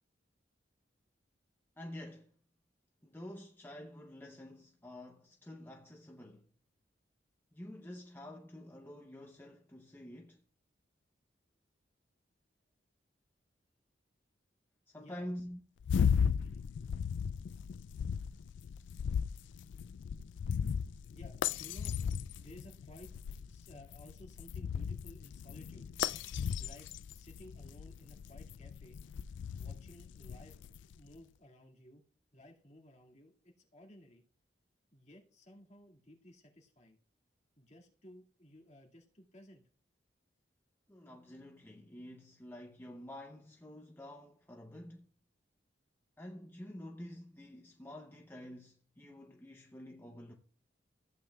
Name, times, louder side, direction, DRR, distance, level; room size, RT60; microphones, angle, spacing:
voice 1, 1.8-2.3 3.0-6.5 7.5-10.4 14.9-15.6 40.9-45.1 46.2-50.3, left 1 dB, 10° left, 0.7 m, -48 dB
voice 2, 14.9-15.3 21.1-22.0 22.4-23.1 23.5-25.9 26.6-29.0 29.5-32.0 32.3-34.2 34.9-37.0 37.6-39.6, left 1 dB, 40° left, 2.1 m, -56 dB
sound 1, 15.8-31.0, left 7 dB, 80° left, 0.3 m, -36 dB
14.5 x 8.5 x 2.3 m
head